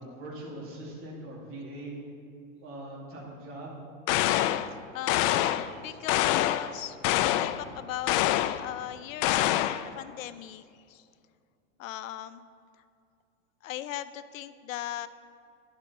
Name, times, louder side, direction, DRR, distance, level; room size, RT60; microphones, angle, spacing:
voice 1, 0.0-2.0 2.6-3.7 7.2-7.3, right 1 dB, 35° right, -4 dB, 2.5 m, -41 dB
sound 1, 4.1-4.7 5.1-5.7 6.1-6.7 7.0-7.6 8.1-8.6 9.2-9.9, left 14 dB, 45° left, 0.4 m, -25 dB
voice 2, 4.7-7.0 7.3-11.0 11.8-12.4 13.6-15.1, left 12 dB, 80° left, 13 dB, 0.6 m, -38 dB
10.5 x 5.2 x 7.0 m, 2.4 s
hypercardioid pair, 115°, 40 cm